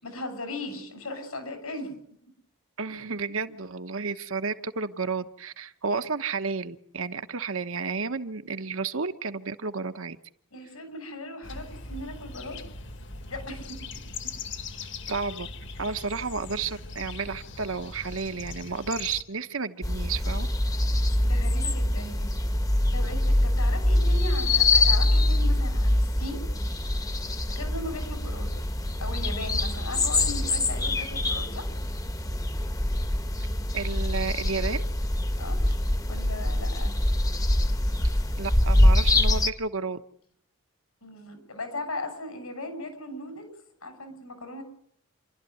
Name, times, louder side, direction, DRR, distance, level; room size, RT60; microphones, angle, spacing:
voice 1, 0.0-2.0 10.5-12.6 13.3-13.8 21.2-22.4 22.9-26.4 27.5-28.5 29.0-31.7 35.4-35.7 36.1-37.0 37.9-38.0 41.0-43.5 43.8-44.6, left 2 dB, 85° left, 8 dB, 6.5 m, -38 dB
voice 2, 2.8-10.2 15.1-15.5 15.8-20.5 33.7-34.9 38.4-40.0, right 4 dB, 70° right, 10 dB, 1.2 m, -32 dB
sound 1, 11.4-19.2, left 4 dB, 55° left, 1.5 m, -40 dB
sound 2, 19.8-39.5, left 1 dB, 15° left, 0.9 m, -24 dB
28.5 x 12.5 x 9.5 m, 0.69 s
head